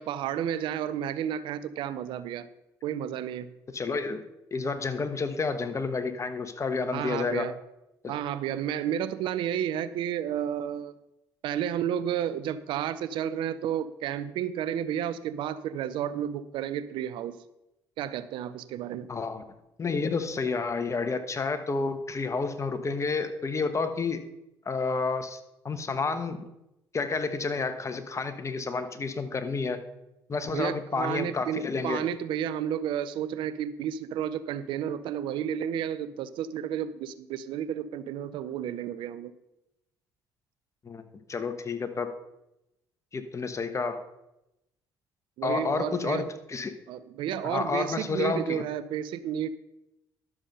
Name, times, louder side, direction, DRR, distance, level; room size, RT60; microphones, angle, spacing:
voice 1, 0.0-2.5 2.8-3.5 6.9-7.5 8.1-10.9 11.4-17.4 18.0-19.1 30.5-39.3 45.4-46.3 46.9-49.5, right 9 dB, 70° right, 14 dB, 0.6 m, -31 dB
voice 2, 3.7-4.2 4.5-7.5 8.0-8.1 19.1-19.4 19.8-24.2 24.6-25.4 25.6-26.5 26.9-29.8 30.3-32.1 40.8-41.0 41.3-42.1 43.1-44.0 45.4-46.7 47.4-48.6, left 4 dB, 35° left, 10 dB, 1.2 m, -30 dB
11.5 x 7.0 x 5.4 m, 0.91 s
supercardioid pair, 60°, 9 cm